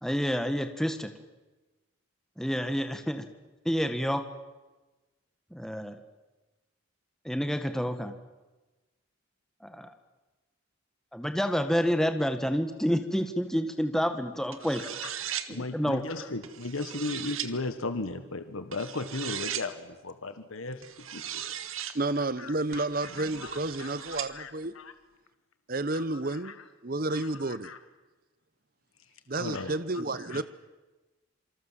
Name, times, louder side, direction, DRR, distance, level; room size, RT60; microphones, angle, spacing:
voice 1, 0.0-1.1 2.4-3.2 3.6-4.2 5.5-6.0 7.2-8.2 9.6-9.9 11.1-14.8 15.5-16.0, equal, ahead, 7 dB, 1.7 m, -29 dB
sound 1, 14.5-15.5 16.4-17.5 18.7-19.7 20.8-22.0 22.7-24.3, right 10 dB, 80° right, 1.9 m, -37 dB
voice 2, 14.8-15.1 15.5-20.8 21.1-21.4 22.4-22.8 23.2-24.9 25.9-26.5 27.1-27.8 29.4-29.7 30.1-30.4, left 3 dB, 80° left, 10 dB, 1.5 m, -37 dB
voice 3, 21.9-24.7 25.7-26.6 26.8-27.7 29.3-30.4, right 2 dB, 45° right, 14 dB, 0.9 m, -31 dB
27.5 x 26.0 x 7.5 m, 1.2 s
head